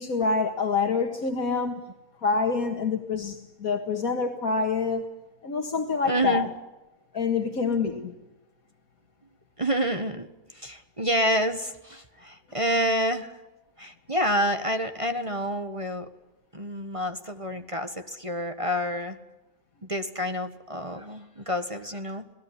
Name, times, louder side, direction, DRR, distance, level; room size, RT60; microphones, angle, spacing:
voice 1, 0.0-1.8 2.2-5.0 5.4-6.5 7.1-8.1, left 4 dB, 80° left, 4 dB, 2.2 m, -26 dB
voice 2, 6.0-6.5 9.6-13.4 13.8-16.1 16.5-19.2 19.8-22.2, equal, 25° right, 7 dB, 1.6 m, -28 dB
27.0 x 18.0 x 9.9 m, 1.1 s
omnidirectional pair, 1.5 m